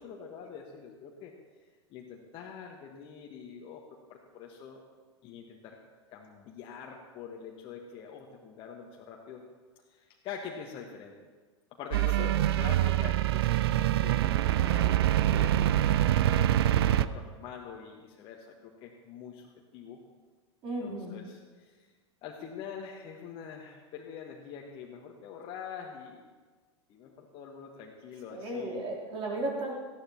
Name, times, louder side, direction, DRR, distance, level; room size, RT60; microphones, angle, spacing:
voice 1, 0.0-1.3 1.9-3.8 4.1-4.8 5.2-5.8 6.1-9.4 9.9-11.1 11.7-20.0 20.8-21.9 22.2-26.3 26.9-28.8, left 6 dB, 35° left, -1 dB, 1.5 m, -45 dB
sound 1, 11.9-17.1, right 13 dB, 55° right, 0.5 m, -25 dB
voice 2, 20.6-21.2 28.3-29.7, right 1 dB, 35° right, -2 dB, 3.5 m, -34 dB
18.5 x 15.0 x 3.0 m, 1.4 s
figure-of-eight pair, 85°, 15 cm